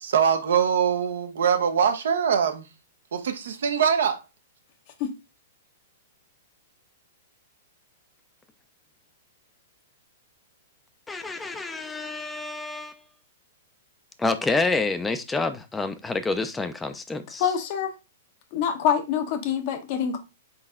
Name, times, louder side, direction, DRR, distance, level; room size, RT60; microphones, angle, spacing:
voice 1, 0.0-2.7 3.1-4.2, right 7 dB, 70° right, 0.7 m, -23 dB
voice 2, 11.1-12.9 14.2-17.4, left 3 dB, 10° left, 0.5 m, -28 dB
voice 3, 17.4-17.9 18.5-20.2, left 8 dB, 50° left, 0.9 m, -25 dB
4.2 x 3.9 x 2.4 m
hypercardioid pair, 115°, 0 cm